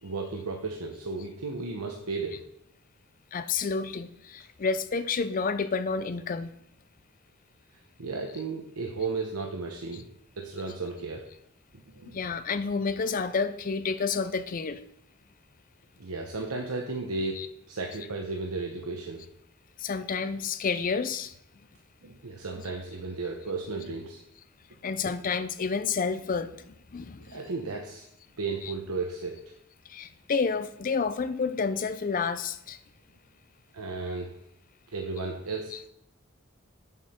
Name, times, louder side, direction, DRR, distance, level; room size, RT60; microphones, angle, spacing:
voice 1, 0.0-2.4 8.0-10.0 10.4-11.2 11.9-12.2 16.0-17.4 17.7-19.2 22.0-24.2 27.3-28.0 28.4-29.4 33.7-34.3 34.9-35.8, right 3 dB, 85° right, 0.9 m, -34 dB
voice 2, 3.3-6.5 9.9-10.0 12.1-14.8 17.4-17.5 19.8-21.3 24.8-27.5 28.6-28.7 29.9-32.8 35.7-35.8, left 5 dB, 40° left, 0.4 m, -30 dB
8.4 x 7.1 x 4.3 m
head